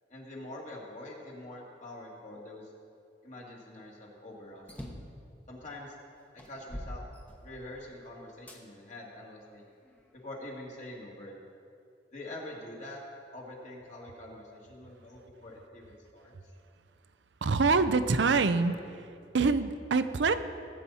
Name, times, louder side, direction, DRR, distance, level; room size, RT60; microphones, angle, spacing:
voice 1, 0.1-2.7 3.2-4.6 5.5-6.0 6.3-7.0 7.4-9.6 10.1-11.4 12.1-13.0 13.3-16.3, left 1 dB, 40° left, -2 dB, 2.2 m, -45 dB
sound 1, 4.7-5.2 5.8-5.9 6.4-7.8 8.5-8.6 9.3-10.4, equal, 10° left, 1.1 m, -44 dB
voice 2, 17.4-19.1 19.3-20.3, right 4 dB, 75° right, 11 dB, 0.6 m, -25 dB
19.0 x 8.8 x 4.2 m, 2.4 s
head